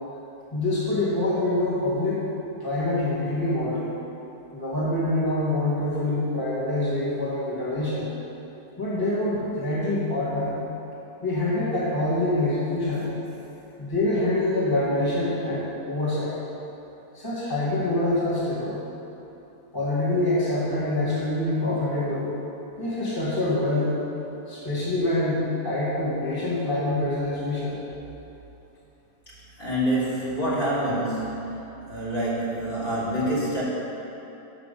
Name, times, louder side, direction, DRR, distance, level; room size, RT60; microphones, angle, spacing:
voice 1, 0.5-2.2 2.6-3.9 4.5-8.1 8.8-10.6 11.2-13.1 13.8-16.3 17.1-18.8 19.7-22.3 22.8-24.0 24.5-27.8, left 1 dB, 15° left, -8 dB, 1.5 m, -25 dB
voice 2, 29.6-33.6, right 1 dB, 30° left, -9 dB, 1.6 m, -27 dB
5.9 x 5.7 x 6.7 m, 3.0 s
omnidirectional pair, 1.8 m